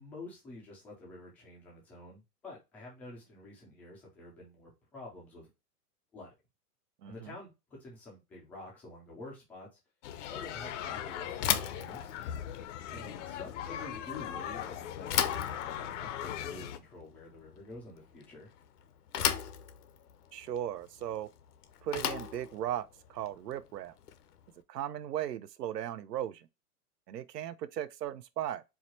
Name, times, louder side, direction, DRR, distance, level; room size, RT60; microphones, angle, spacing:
voice 1, 0.0-5.5 6.1-6.3 7.0-9.7 10.3-12.1 12.9-18.5, left 2 dB, 5° left, 0.3 m, -49 dB
voice 2, 7.0-7.3 13.0-13.2 20.3-21.3 21.8-23.9 24.7-26.5 27.1-28.6, right 11 dB, 85° right, 0.7 m, -37 dB
sound 1, 10.0-16.8, left 10 dB, 50° left, 0.6 m, -39 dB
Bicycle / Thump thud, 11.3-24.5, left 9 dB, 75° left, 0.8 m, -37 dB
4.7 x 2.2 x 4.1 m
hypercardioid pair, 130°, 47 cm